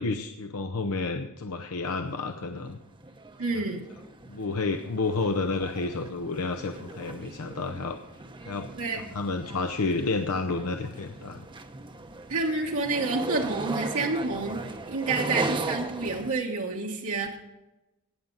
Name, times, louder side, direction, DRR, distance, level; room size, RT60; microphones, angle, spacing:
voice 1, 0.0-2.8 3.5-3.6 4.3-8.0 8.4-11.5, left 3 dB, 80° left, 6 dB, 0.7 m, -30 dB
sound 1, 1.9-2.2 2.5-16.3, right 2 dB, 20° right, 0.8 m, -38 dB
voice 2, 3.4-3.8 8.7-9.0 12.3-14.6 14.9-17.4, right 3 dB, 70° right, -1 dB, 1.4 m, -28 dB
18.5 x 7.3 x 3.9 m, 0.99 s
head